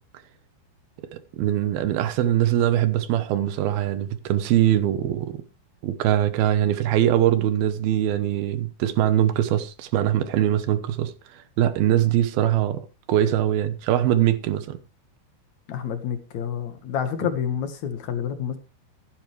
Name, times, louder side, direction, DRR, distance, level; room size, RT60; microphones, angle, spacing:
voice 1, 1.4-5.4 5.8-11.1 11.6-14.8, right 12 dB, 70° right, 2.7 m, -22 dB
voice 2, 15.7-18.6, left 8 dB, 55° left, 2.3 m, -28 dB
15.0 x 11.0 x 3.3 m
omnidirectional pair, 4.8 m